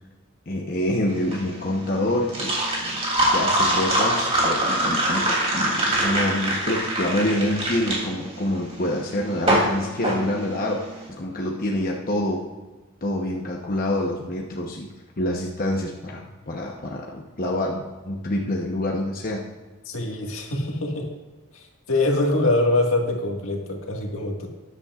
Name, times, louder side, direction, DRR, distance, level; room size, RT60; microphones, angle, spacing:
voice 1, 0.5-3.0 3.3-10.8 11.1-12.4 13.0-14.9 15.2-19.4, left 1 dB, 45° left, -1 dB, 1.0 m, -26 dB
sound 1, 1.1-11.0, right 1 dB, 30° right, 2.9 m, -24 dB
voice 2, 19.9-21.1 21.9-24.5, left 2 dB, 75° left, 0 dB, 1.8 m, -23 dB
14.0 x 10.0 x 2.5 m, 1.2 s
head